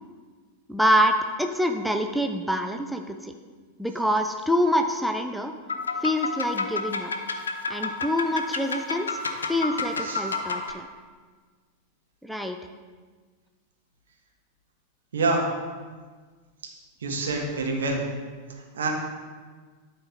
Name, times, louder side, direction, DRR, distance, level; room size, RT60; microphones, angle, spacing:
voice 1, 0.7-3.3 3.8-5.5 6.0-7.1 7.7-9.2 9.5-10.9 12.2-12.6, equal, ahead, 5 dB, 0.5 m, -26 dB
sound 1, 5.7-10.7, left 4 dB, 70° left, 0.6 m, -30 dB
voice 2, 15.1-15.4 17.0-18.0 18.7-18.9, right 3 dB, 65° right, 1 dB, 1.3 m, -26 dB
11.5 x 4.5 x 3.9 m, 1.5 s
figure-of-eight pair, 90°, 0 cm